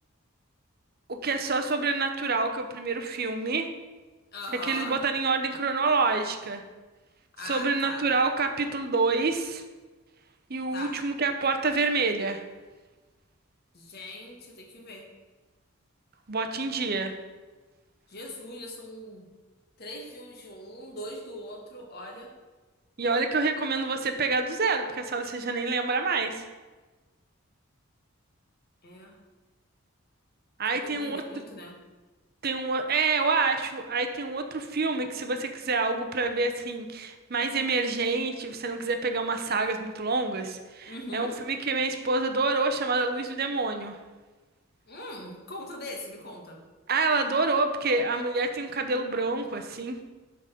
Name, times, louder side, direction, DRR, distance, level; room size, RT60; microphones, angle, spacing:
voice 1, 1.1-3.7 4.6-6.6 7.4-9.6 10.5-12.4 16.3-17.1 23.0-26.5 30.6-31.4 32.4-44.0 46.9-50.0, right 3 dB, 45° right, 6 dB, 0.8 m, -27 dB
voice 2, 4.3-5.0 7.3-8.1 10.7-11.0 13.7-15.1 18.1-19.3 19.8-22.3 28.8-29.2 30.7-31.8 40.9-41.3 44.9-46.6, left 1 dB, 45° left, 1 dB, 1.5 m, -40 dB
9.0 x 4.0 x 6.7 m, 1.3 s
head